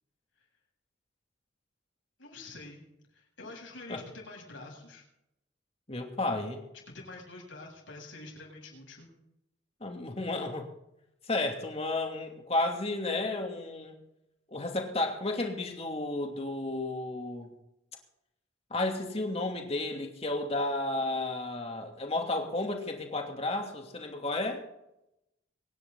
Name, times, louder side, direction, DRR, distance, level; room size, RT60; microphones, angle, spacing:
voice 1, 2.2-2.8 3.1-5.0 6.9-9.1, left 2 dB, 85° left, -1 dB, 7.5 m, -46 dB
voice 2, 5.9-6.6 9.8-10.7 11.3-13.9 14.5-17.5 18.7-24.6, left 2 dB, 30° left, 2 dB, 2.7 m, -32 dB
24.5 x 10.5 x 4.1 m, 0.85 s
head